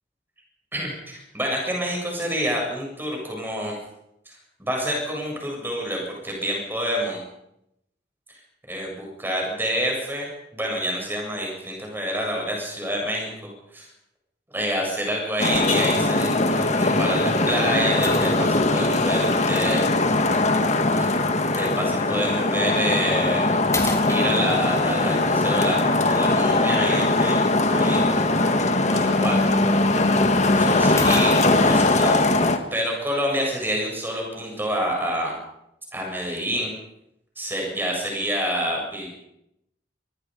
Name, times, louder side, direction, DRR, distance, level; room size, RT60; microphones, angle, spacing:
voice 1, 0.7-3.8 4.3-7.2 8.7-13.9 14.5-19.9 21.0-23.6 24.1-28.3 28.8-29.6 30.5-32.4 32.7-35.3 35.9-36.7 37.4-39.1, equal, 10° right, -1 dB, 7.8 m, -28 dB
Traffic noise roadway noise, 15.4-32.6, left 2 dB, 35° left, 1.8 m, -20 dB
sound 1, 15.5-15.8 16.5-16.6 18.0-18.8 20.3-20.4 22.6-22.8 23.2-23.4 23.7-24.8 28.9-29.0 29.3-29.4 30.5-30.6 31.0-31.8, left 3 dB, 15° left, 2.4 m, -32 dB
23.5 x 22.0 x 5.4 m, 0.81 s
head